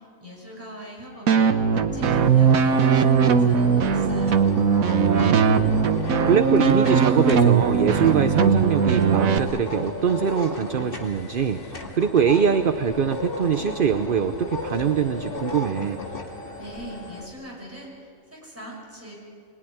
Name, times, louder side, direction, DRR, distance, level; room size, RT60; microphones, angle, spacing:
voice 1, 0.0-4.5 16.6-19.2, equal, 10° right, -3 dB, 6.3 m, -41 dB
sound 1, 1.3-9.4, right 6 dB, 80° right, 1.4 m, -19 dB
sound 2, 1.9-17.3, left 2 dB, 40° left, 2.3 m, -35 dB
voice 2, 5.2-5.8 6.3-11.6 11.9-16.0, right 7 dB, 45° right, 9 dB, 0.8 m, -23 dB
25.5 x 20.0 x 9.9 m, 2.6 s
omnidirectional pair, 1.4 m